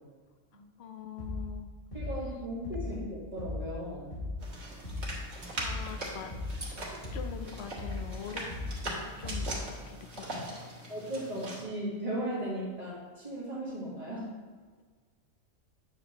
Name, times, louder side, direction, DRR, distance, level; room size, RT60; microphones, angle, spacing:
voice 1, 0.8-1.7 5.5-6.3 6.7-6.8 7.1-8.5 8.8-10.9, left 7 dB, 60° left, 7 dB, 0.9 m, -44 dB
sound 1, 1.2-1.6 1.9-2.3 2.6-3.0 3.4-3.7 4.1-4.5 4.8-5.2 5.6-5.9 6.3-6.7 7.0-7.4 7.8-8.1 8.5-8.9 9.2-9.6, left 2 dB, 45° left, 2.2 m, -37 dB
voice 2, 1.9-4.1 10.9-14.3, right 1 dB, 30° right, -10 dB, 1.8 m, -36 dB
sound 2, 4.4-11.6, right 1 dB, 60° right, 1.9 m, -41 dB
8.8 x 6.9 x 3.0 m, 1.5 s
omnidirectional pair, 1.3 m